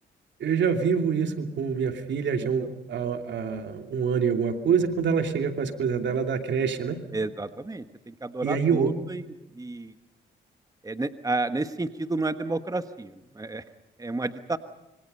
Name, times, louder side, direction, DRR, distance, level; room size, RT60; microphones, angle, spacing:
voice 1, 0.4-7.0 8.4-8.9, right 6 dB, 70° right, 5 dB, 2.8 m, -26 dB
voice 2, 7.1-9.9 10.8-13.6 14.0-14.6, right 2 dB, 20° right, 10 dB, 1.4 m, -31 dB
26.0 x 25.0 x 5.5 m, 0.99 s
cardioid pair, 65°, 19 cm